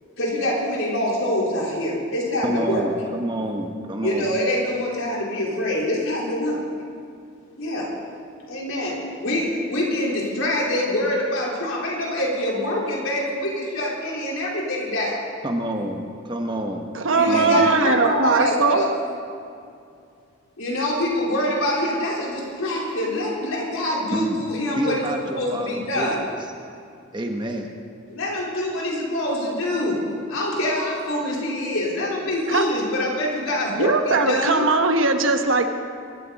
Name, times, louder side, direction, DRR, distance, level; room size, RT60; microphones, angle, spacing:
voice 1, 0.2-2.8 4.0-6.7 7.6-7.9 8.5-15.2 17.1-18.9 20.6-26.2 28.1-34.7, left 1 dB, 80° left, -4 dB, 4.3 m, -25 dB
voice 2, 2.4-4.3 15.4-16.9 17.3-17.7 24.1-24.4 24.7-26.2 27.1-27.7, right 1 dB, 20° right, 3 dB, 1.2 m, -28 dB
voice 3, 16.9-18.8 32.5-32.7 33.7-35.7, right 3 dB, 70° right, 6 dB, 1.1 m, -20 dB
23.0 x 13.5 x 4.2 m, 2.4 s
head